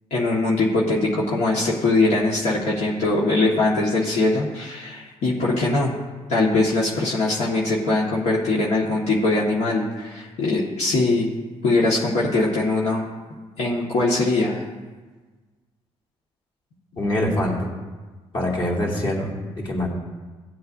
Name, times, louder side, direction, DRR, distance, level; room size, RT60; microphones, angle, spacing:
voice 1, 0.1-6.0 6.3-11.3 11.6-13.1 13.6-14.6, left 2 dB, 75° left, -5 dB, 1.7 m, -21 dB
voice 2, 17.0-17.7 18.3-19.9, left 1 dB, 45° left, -4 dB, 2.7 m, -24 dB
17.0 x 7.9 x 2.7 m, 1.3 s
cardioid pair, 110°, 12 cm